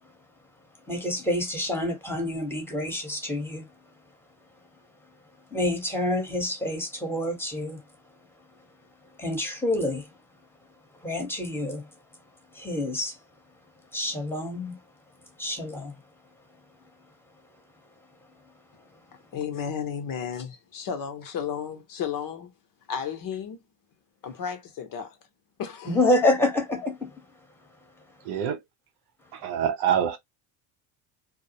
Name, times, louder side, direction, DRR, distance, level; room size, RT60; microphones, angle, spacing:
voice 1, 0.9-3.7 5.5-7.8 9.2-10.1 11.0-11.9 12.5-13.2 13.9-14.8 15.4-15.9 25.9-27.1, left 1 dB, 5° left, 1.0 m, -27 dB
voice 2, 19.3-22.5 22.9-23.6 24.2-25.2 25.6-26.0, left 7 dB, 45° left, 0.7 m, -33 dB
voice 3, 28.2-28.6 29.3-30.2, right 9 dB, 55° right, 0.7 m, -25 dB
2.3 x 2.0 x 2.7 m
supercardioid pair, 90°, 47 cm